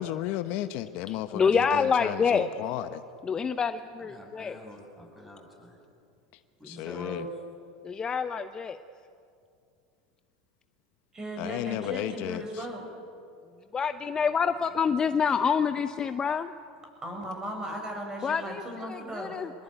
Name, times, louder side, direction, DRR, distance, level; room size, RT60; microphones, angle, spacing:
voice 1, 0.0-3.0 6.6-7.3 11.4-12.7, left 13 dB, 55° left, 10 dB, 1.0 m, -34 dB
voice 2, 1.3-2.5 3.2-4.6 7.8-8.8 13.7-16.5 18.2-18.6 18.9-19.5, left 6 dB, 25° left, 10 dB, 0.8 m, -27 dB
voice 3, 4.0-5.8 6.6-7.4, equal, 5° right, 0 dB, 7.6 m, -43 dB
voice 4, 11.1-12.8 17.0-19.3, right 1 dB, 20° right, 3 dB, 7.5 m, -37 dB
25.5 x 20.5 x 9.2 m, 2.5 s
supercardioid pair, 120°, 3 cm